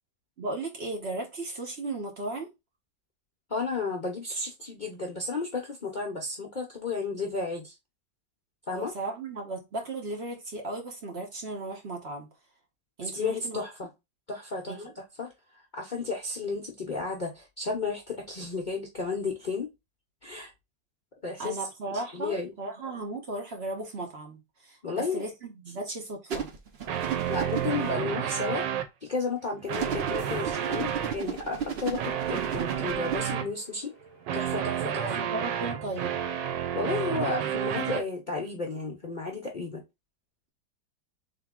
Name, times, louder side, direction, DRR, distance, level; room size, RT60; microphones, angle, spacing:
voice 1, 0.4-2.5 8.7-12.3 13.0-13.6 14.7-14.9 21.4-26.5 35.0-36.2, right 2 dB, 45° right, 1.0 m, -36 dB
voice 2, 3.5-7.7 8.7-8.9 13.2-13.9 14.3-15.3 15.7-19.7 20.2-20.5 21.2-21.6 21.9-22.5 24.8-25.3 27.3-28.7 29.0-33.9 34.3-35.0 36.7-39.8, left 4 dB, 90° left, 0.4 m, -33 dB
sound 1, 26.3-27.9 29.7-33.3, right 7 dB, 60° right, 0.6 m, -34 dB
sound 2, 26.8-28.9 29.5-31.2 32.0-33.5 34.3-38.0, right 9 dB, 85° right, 1.3 m, -30 dB
sound 3, 30.2-37.7, right 3 dB, 25° right, 1.8 m, -51 dB
3.6 x 2.8 x 3.6 m
omnidirectional pair, 1.9 m